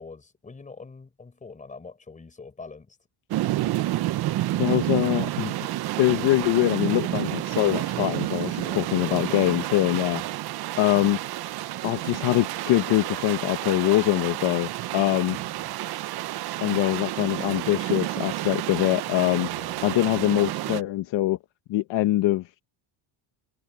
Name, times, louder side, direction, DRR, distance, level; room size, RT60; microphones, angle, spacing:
voice 1, 0.0-3.0 8.6-10.2 15.3-15.7 19.5-19.9, left 4 dB, 15° left, 4.8 m, -44 dB
sound 1, 3.3-20.8, right 15 dB, 50° right, 0.8 m, -30 dB
voice 2, 4.6-5.5 6.0-10.2 10.8-11.2 11.8-15.4 16.6-19.5 19.8-21.4 21.7-22.4, left 15 dB, 60° left, 1.4 m, -23 dB
cardioid pair, 170°, 50 cm